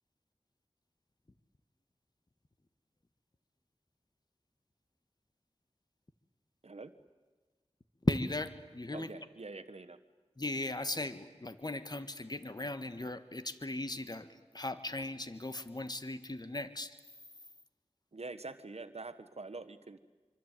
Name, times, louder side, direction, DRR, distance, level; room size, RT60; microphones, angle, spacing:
voice 1, 8.0-9.1 10.4-16.9, left 2 dB, 40° left, 11 dB, 1.7 m, -37 dB
voice 2, 8.9-10.0 18.1-20.0, right 3 dB, 70° right, 11 dB, 1.4 m, -45 dB
26.0 x 25.0 x 9.2 m, 1.3 s
wide cardioid pair, 40°, 11 cm